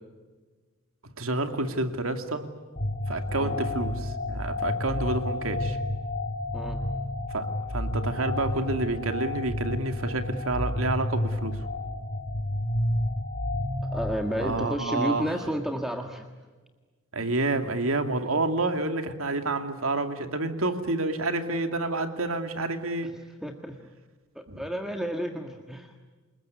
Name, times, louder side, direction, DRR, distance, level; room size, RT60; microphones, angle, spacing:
voice 1, 1.2-2.5 3.1-5.8 7.3-11.6 14.4-15.3 17.1-23.1 24.5-24.6, right 2 dB, 80° right, 7 dB, 2.6 m, -29 dB
sound 1, 2.8-14.6, left 1 dB, 50° left, 3.3 m, -30 dB
voice 2, 13.8-16.4 23.0-23.1 23.4-23.9 24.3-25.9, equal, ahead, 4 dB, 1.6 m, -32 dB
29.0 x 20.0 x 9.7 m, 1.4 s
head